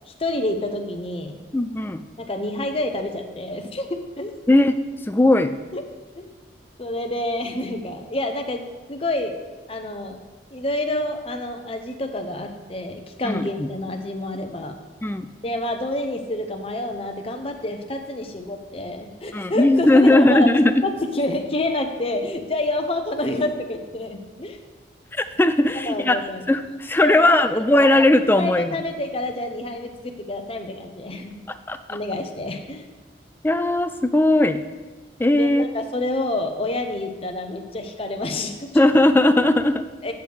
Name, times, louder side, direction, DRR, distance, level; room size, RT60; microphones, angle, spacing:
voice 1, 0.1-1.4 2.2-4.3 5.7-5.8 6.2-6.3 6.8-9.3 9.7-10.2 10.5-14.8 15.4-20.5 20.8-24.6 25.9-26.4 27.0-27.3 27.7-27.9 28.4-31.3 31.9-32.8 35.3-38.8 40.0-40.1, left 1 dB, 30° left, 4 dB, 0.7 m, -28 dB
voice 2, 1.5-2.0 4.5-4.7 5.0-5.5 13.2-13.7 15.0-15.3 19.3-20.8 25.1-26.2 26.5-28.7 31.5-32.0 33.4-34.6 35.2-35.7 38.7-39.8, left 1 dB, 10° left, 10 dB, 0.3 m, -18 dB
9.5 x 7.9 x 3.4 m, 1.3 s
head